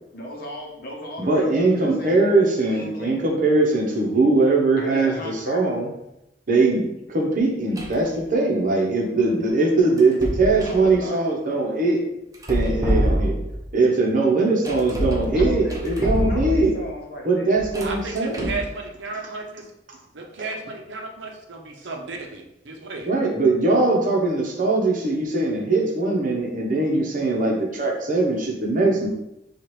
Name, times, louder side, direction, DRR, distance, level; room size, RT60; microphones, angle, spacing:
voice 1, 0.1-2.2 2.6-3.3 4.8-5.7 10.6-11.2 15.3-17.5, left 1 dB, 55° left, -1 dB, 0.8 m, -36 dB
voice 2, 1.2-5.9 6.5-12.0 12.5-13.4 13.7-16.8 17.2-18.6 23.1-29.1, right 3 dB, 50° right, -1 dB, 0.9 m, -21 dB
sound 1, 7.8-8.1 10.0-10.9 12.3-13.7 14.7-16.8 17.6-18.7, equal, 20° right, 0.6 m, -26 dB
voice 3, 17.8-19.7 20.1-23.1, right 3 dB, 80° right, 1 dB, 0.7 m, -34 dB
4.7 x 2.4 x 3.1 m, 0.87 s
head